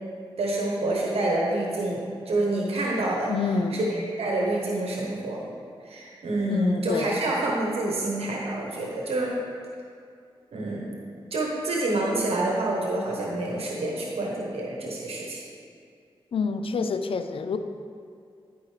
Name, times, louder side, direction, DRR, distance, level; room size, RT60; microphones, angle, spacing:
voice 1, 0.4-3.3 3.7-5.5 5.8-9.4 10.5-11.0 11.3-15.4, right 2 dB, 85° right, -2 dB, 1.1 m, -27 dB
voice 2, 3.3-3.9 6.5-7.2 16.3-17.6, left 4 dB, 70° left, 9 dB, 0.5 m, -27 dB
12.0 x 5.2 x 3.3 m, 2.4 s
cardioid pair, 55°, 10 cm